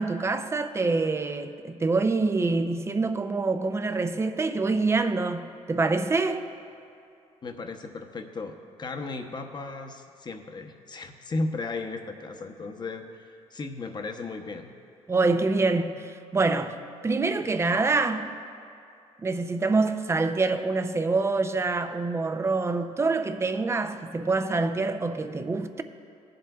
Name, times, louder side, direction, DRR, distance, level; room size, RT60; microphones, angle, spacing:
voice 1, 0.0-6.5 15.1-18.3 19.2-25.8, right 3 dB, 20° right, 0.5 m, -26 dB
voice 2, 7.4-14.7, left 3 dB, 35° left, 0.8 m, -35 dB
17.0 x 7.7 x 2.3 m
cardioid pair, 90°, 12 cm